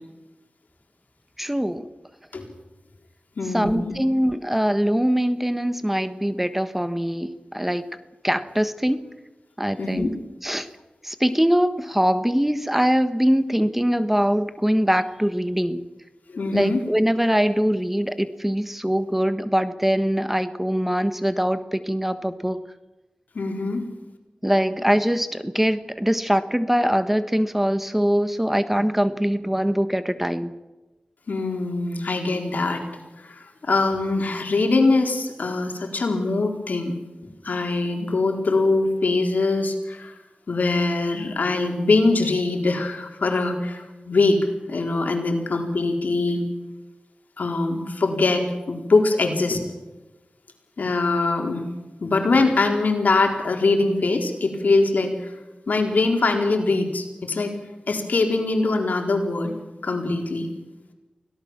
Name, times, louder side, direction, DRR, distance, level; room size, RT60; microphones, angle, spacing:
voice 1, 1.4-1.9 3.5-7.8 8.2-9.0 9.6-10.1 10.4-10.7 11.0-15.8 16.5-22.6 24.4-30.5, equal, 10° right, 11 dB, 1.4 m, -22 dB
voice 2, 3.4-4.0 9.8-10.1 16.3-16.8 23.3-23.8 31.3-32.8 33.2-36.9 37.4-40.1 40.5-44.4 44.7-46.4 47.4-49.7 50.8-51.6 52.0-55.3 55.7-57.6 57.9-59.6 59.8-60.5, left 3 dB, 80° left, 3 dB, 4.3 m, -22 dB
25.0 x 18.0 x 7.4 m, 1.1 s
wide cardioid pair, 60°, 3 cm